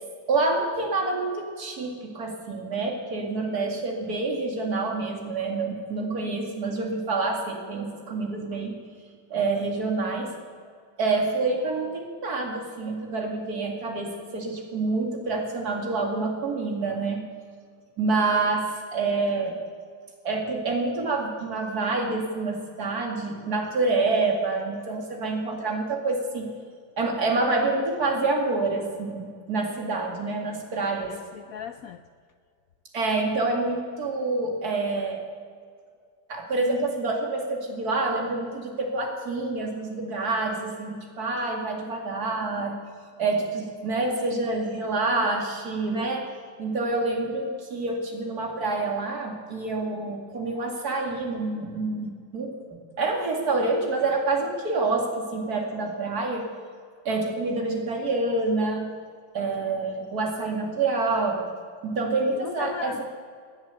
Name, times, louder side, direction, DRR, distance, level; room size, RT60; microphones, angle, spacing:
voice 1, 0.3-8.8 9.3-10.3 11.0-17.2 18.0-19.6 20.2-26.5 27.0-31.2 32.9-35.3 36.3-42.8 43.2-46.3 46.6-52.5 53.0-56.4 57.0-58.9 59.3-61.5 61.8-63.0, right 3 dB, 50° right, 1 dB, 2.8 m, -27 dB
voice 2, 31.1-32.0 45.0-45.3 62.3-63.0, left 9 dB, 85° left, 10 dB, 0.7 m, -37 dB
18.5 x 10.5 x 7.0 m, 2.1 s
omnidirectional pair, 2.1 m